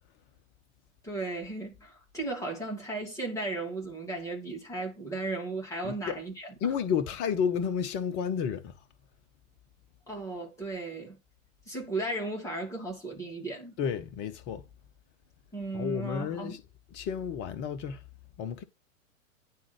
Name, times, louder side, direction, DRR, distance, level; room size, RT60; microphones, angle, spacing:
voice 1, 1.0-6.7 10.1-11.2 11.7-13.8 15.5-16.6, right 2 dB, 5° left, 2.6 m, -35 dB
voice 2, 5.8-6.2 6.6-8.7 13.8-14.7 15.7-16.6 16.9-18.0 18.4-18.6, left 7 dB, 25° left, 0.7 m, -31 dB
10.5 x 3.6 x 3.1 m
figure-of-eight pair, 110°, 40 cm